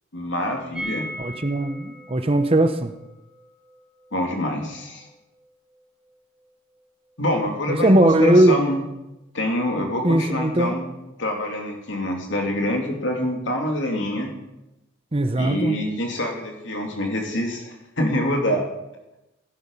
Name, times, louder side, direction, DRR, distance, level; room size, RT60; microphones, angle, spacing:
voice 1, 0.1-1.1 4.1-5.1 7.2-8.8 9.3-10.9 11.2-14.3 15.3-18.6, left 1 dB, 65° left, 2 dB, 2.8 m, -25 dB
sound 1, 0.7-6.5 6.8-6.9 7.1-7.2, equal, 5° right, 3.3 m, -40 dB
voice 2, 1.2-2.9 7.7-8.6 10.0-10.8 15.1-15.8, right 1 dB, 30° right, 9 dB, 0.8 m, -19 dB
16.0 x 11.5 x 5.5 m, 0.94 s
head